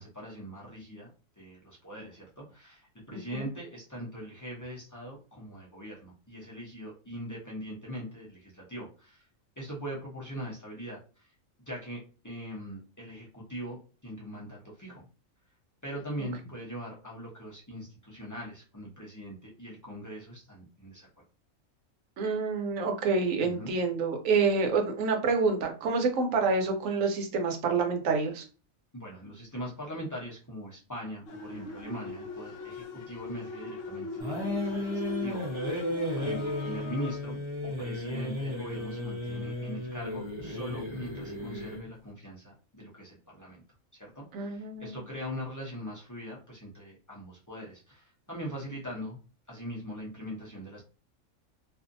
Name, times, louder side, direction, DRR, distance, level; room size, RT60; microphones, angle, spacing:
voice 1, 0.0-9.3 9.6-11.3 11.7-15.1 15.8-21.1 23.4-23.7 28.9-35.9 36.1-43.6 43.9-49.2 49.5-50.8, equal, 20° left, -5 dB, 0.5 m, -41 dB
voice 2, 3.1-3.5 22.2-28.4 44.3-45.0, right 4 dB, 75° right, 4 dB, 1.0 m, -28 dB
sound 1, 31.3-37.2, left 3 dB, 60° left, 0.7 m, -40 dB
sound 2, 34.2-41.9, left 1 dB, 30° right, 0.6 m, -34 dB
2.5 x 2.4 x 2.5 m, 0.36 s
omnidirectional pair, 1.4 m